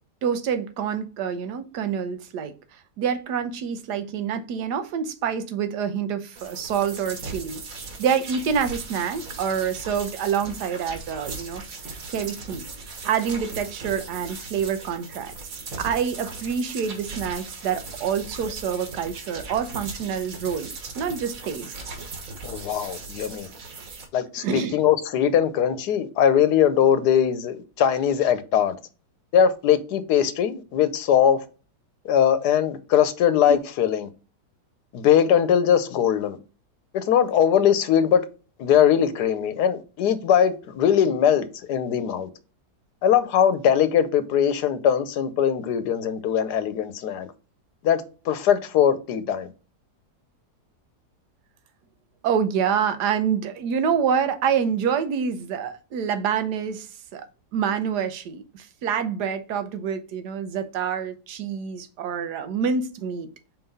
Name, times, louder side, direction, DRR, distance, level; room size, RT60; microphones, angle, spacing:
voice 1, 0.2-2.5 3.0-7.6 8.0-11.6 12.1-12.6 13.0-15.3 15.8-20.7 20.9-21.7 24.4-24.8 33.5-33.6 52.2-56.9 57.1-57.2 57.5-63.3, right 7 dB, 80° right, 1.3 m, -27 dB
sound 1, 6.4-24.1, right 3 dB, 60° right, 1.6 m, -38 dB
voice 2, 22.4-23.5 24.1-28.7 29.3-31.4 32.0-34.1 34.9-36.4 36.9-38.2 38.6-42.3 43.0-47.3 47.8-49.5, left 9 dB, 80° left, 1.3 m, -21 dB
4.6 x 4.0 x 5.3 m
omnidirectional pair, 1.8 m